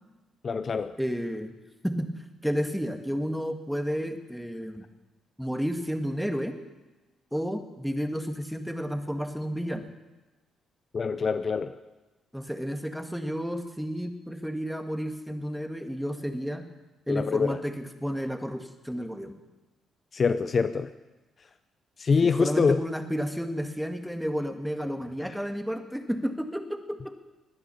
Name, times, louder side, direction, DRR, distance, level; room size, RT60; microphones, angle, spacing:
voice 1, 0.4-0.9 10.9-11.7 17.1-17.6 20.1-20.9 22.0-22.8, left 5 dB, 40° left, 11 dB, 0.6 m, -24 dB
voice 2, 1.0-1.5 1.8-2.1 2.4-4.9 5.4-6.5 7.3-9.9 12.3-16.7 17.1-19.4 22.2-27.2, equal, ahead, 6 dB, 1.7 m, -31 dB
20.5 x 9.7 x 6.9 m, 1.1 s
cardioid pair, 90°, 0 cm